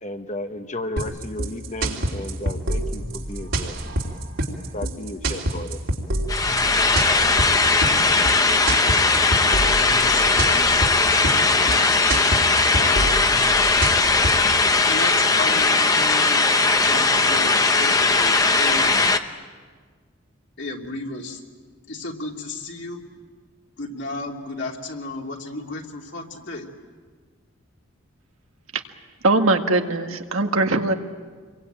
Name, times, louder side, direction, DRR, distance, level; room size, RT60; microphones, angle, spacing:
voice 1, 0.0-4.0 4.7-5.8, left 1 dB, 35° left, 8 dB, 1.2 m, -34 dB
sound 1, 1.0-14.5, right 1 dB, 70° right, 3.3 m, -27 dB
sound 2, 6.3-19.2, left 3 dB, 15° left, 0.8 m, -19 dB
voice 2, 9.8-11.9 12.8-13.2 14.8-16.5 16.8-19.1 20.6-21.4 21.9-23.0 23.8-26.7, left 2 dB, 60° left, 1 dB, 2.9 m, -33 dB
voice 3, 29.2-30.9, right 2 dB, 90° right, 5 dB, 1.8 m, -20 dB
28.0 x 23.0 x 9.0 m, 1.6 s
head